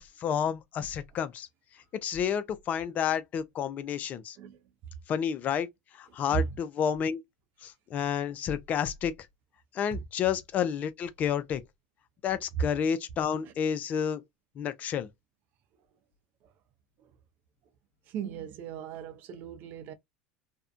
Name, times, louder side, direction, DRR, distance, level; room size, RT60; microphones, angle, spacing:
voice 1, 0.0-1.5 2.0-4.4 5.1-5.7 5.9-7.2 7.6-9.1 9.7-11.6 12.2-14.2 14.6-15.1, left 8 dB, 45° left, 0.4 m, -30 dB
voice 2, 18.1-19.9, right 8 dB, 55° right, 0.6 m, -36 dB
2.6 x 2.1 x 2.4 m
supercardioid pair, 100°, 4 cm